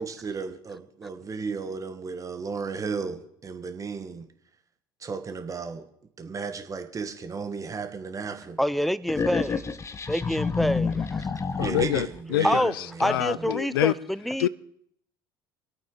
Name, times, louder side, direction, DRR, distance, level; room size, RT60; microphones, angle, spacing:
voice 1, 0.0-4.3 5.0-5.8 6.2-8.6 11.6-12.6 12.9-13.5, right 5 dB, 30° right, 1.4 m, -34 dB
voice 2, 8.6-9.7 10.1-11.3 12.4-12.7 13.0-14.5, equal, ahead, 0.5 m, -27 dB
sound 1, 9.1-12.2, left 5 dB, 25° left, 0.9 m, -29 dB
voice 3, 11.6-13.9 14.4-14.5, left 13 dB, 75° left, 0.4 m, -26 dB
24.5 x 8.8 x 3.9 m
hypercardioid pair, 65°, 12 cm